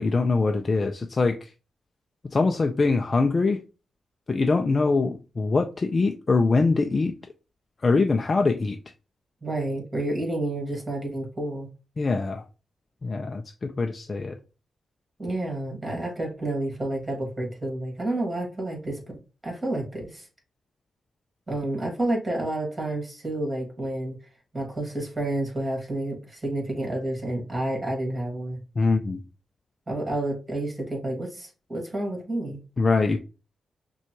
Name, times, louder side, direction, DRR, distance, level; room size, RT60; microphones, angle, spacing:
voice 1, 0.0-1.5 2.2-3.6 4.3-7.1 7.8-8.8 12.0-12.4 13.0-14.4 28.8-29.2 32.8-33.2, left 3 dB, 40° left, 0.4 m, -23 dB
voice 2, 9.4-11.7 15.2-19.0 19.4-20.3 21.5-24.2 24.5-28.6 29.9-32.6, right 1 dB, 25° right, 2.1 m, -30 dB
5.7 x 2.3 x 3.0 m
cardioid pair, 60°, 0 cm